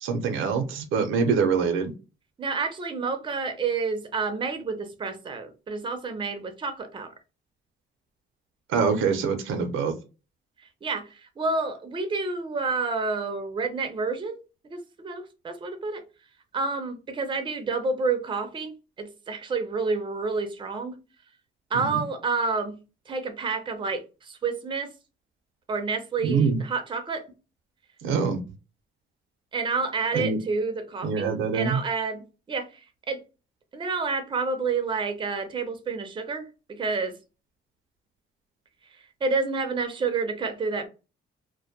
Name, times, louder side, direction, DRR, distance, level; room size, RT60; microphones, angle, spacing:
voice 1, 0.0-1.9 8.7-9.9 21.7-22.0 26.2-26.6 28.0-28.4 30.1-30.4 31.0-31.8, right 5 dB, 80° right, 0.5 m, -24 dB
voice 2, 2.4-7.1 10.8-14.4 14.7-16.0 16.5-21.0 21.7-22.8 23.1-24.9 25.7-27.2 29.5-32.8 33.1-33.2 33.7-37.2 39.2-40.9, right 4 dB, 25° right, 0.5 m, -29 dB
2.1 x 2.1 x 2.7 m
cardioid pair, 90°, 20 cm